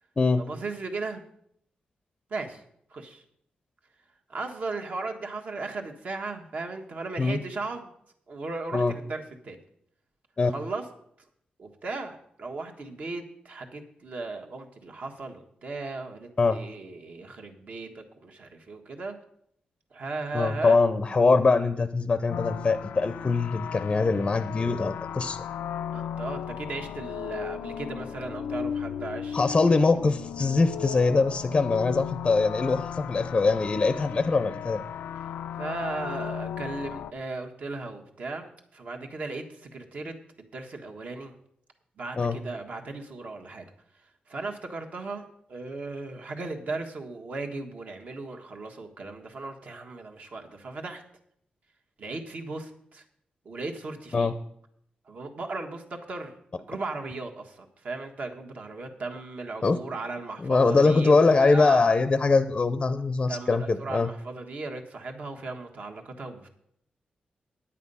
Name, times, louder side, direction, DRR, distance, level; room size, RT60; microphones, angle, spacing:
voice 1, 0.4-1.2 2.3-2.6 2.9-3.2 4.3-7.9 8.3-9.6 10.5-10.8 11.6-19.2 19.9-20.8 25.9-30.0 35.6-40.1 40.5-41.3 42.0-43.7 44.3-51.0 52.0-53.0 53.4-54.3 55.1-61.9 63.3-66.5, right 3 dB, 55° right, 3 dB, 1.5 m, -37 dB
voice 2, 20.3-25.4 29.3-34.8 42.2-42.4 54.1-54.3 59.6-59.8 60.4-64.1, left 3 dB, 30° left, 11 dB, 0.5 m, -23 dB
sound 1, 22.3-37.1, left 9 dB, 90° left, 0.4 m, -36 dB
9.9 x 8.4 x 5.5 m, 0.71 s
wide cardioid pair, 110°, 3 cm